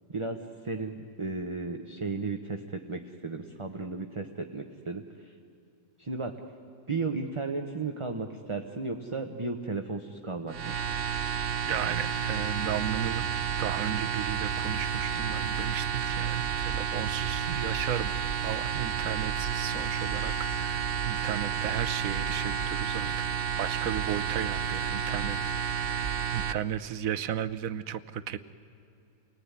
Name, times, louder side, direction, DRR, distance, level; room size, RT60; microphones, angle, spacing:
voice 1, 0.1-5.3 6.0-6.4 6.9-10.8, right 3 dB, 25° right, 4 dB, 1.1 m, -34 dB
sound 1, 10.5-26.5, right 7 dB, 50° right, 0.9 m, -31 dB
voice 2, 11.7-13.3 13.6-18.1 18.4-23.1 23.6-25.4 25.7-28.4, right 10 dB, 85° right, 14 dB, 1.2 m, -34 dB
29.5 x 19.0 x 9.8 m, 2.8 s
omnidirectional pair, 1.4 m